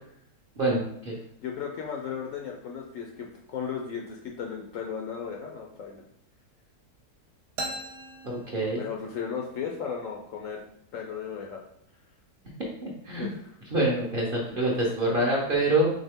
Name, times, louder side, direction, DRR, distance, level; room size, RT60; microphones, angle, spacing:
voice 1, 0.6-1.1 8.2-8.8 12.8-13.3 13.7-15.9, right 1 dB, 45° right, -3 dB, 0.7 m, -26 dB
voice 2, 1.4-6.0 8.8-10.6 10.9-11.6 13.1-13.3, left 7 dB, 70° left, 0 dB, 0.8 m, -35 dB
sound 1, 7.6-9.3, right 1 dB, 75° right, 1.1 m, -38 dB
4.2 x 3.4 x 3.5 m, 0.71 s
omnidirectional pair, 1.7 m